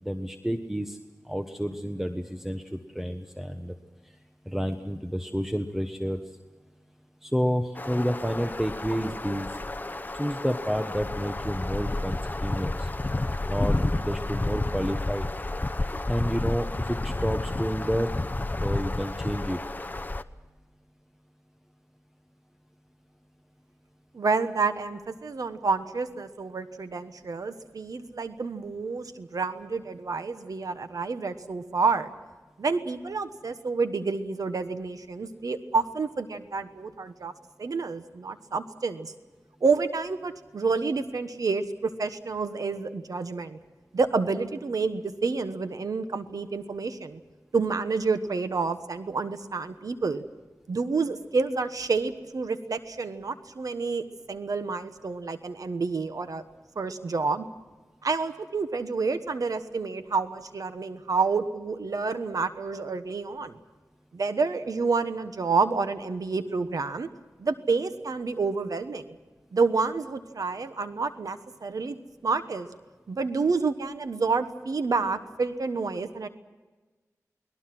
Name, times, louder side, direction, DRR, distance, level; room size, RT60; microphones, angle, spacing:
voice 1, 0.0-1.0 1.2-3.7 4.5-6.2 7.2-9.5 10.1-12.9 13.5-15.3 16.1-18.1 18.6-19.6, equal, 5° right, 5 dB, 1.2 m, -30 dB
sound 1, 7.7-20.2, left 2 dB, 30° left, 0.8 m, -31 dB
voice 2, 24.1-32.1 32.6-37.3 37.6-39.1 39.6-43.6 43.9-47.2 47.5-50.2 50.7-56.4 56.8-57.4 58.0-63.6 64.1-67.1 67.4-69.1 69.5-72.0 72.2-72.7 73.1-76.3, right 4 dB, 85° right, 9 dB, 1.2 m, -29 dB
29.5 x 20.5 x 6.1 m, 1.3 s
wide cardioid pair, 85°, 6 cm